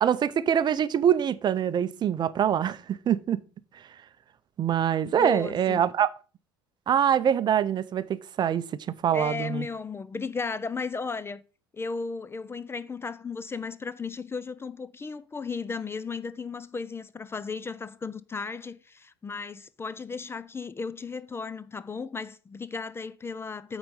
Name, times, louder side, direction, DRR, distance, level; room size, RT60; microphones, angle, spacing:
voice 1, 0.0-3.4 4.6-6.1 6.9-8.0 8.4-8.6 9.0-9.7, right 9 dB, 35° right, 0.6 m, -24 dB
voice 2, 5.0-5.8 9.1-11.4 11.7-23.8, left 4 dB, 20° left, 0.4 m, -35 dB
8.7 x 4.0 x 5.3 m
hypercardioid pair, 75°, 12 cm